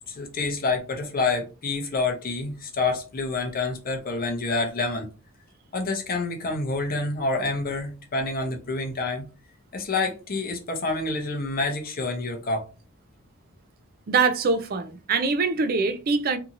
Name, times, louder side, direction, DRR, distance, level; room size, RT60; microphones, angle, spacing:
voice 1, 0.1-5.1 5.7-9.2 9.7-12.7, left 3 dB, 45° left, 0.7 m, -28 dB
voice 2, 14.1-16.4, right 4 dB, 45° right, 0.4 m, -23 dB
2.8 x 2.6 x 2.5 m
head